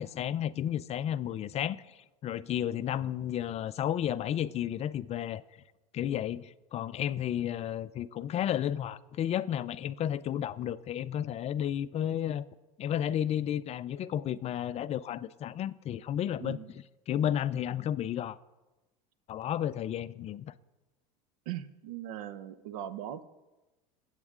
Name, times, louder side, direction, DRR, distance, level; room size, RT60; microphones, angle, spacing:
voice 1, 0.0-5.4 5.9-12.4 12.8-16.6 17.1-18.4 19.3-20.5, left 10 dB, 35° left, 0.4 m, -32 dB
voice 2, 16.4-16.7 21.5-23.2, right 11 dB, 80° right, 0.8 m, -39 dB
21.5 x 8.1 x 3.7 m
supercardioid pair, 105°, 19 cm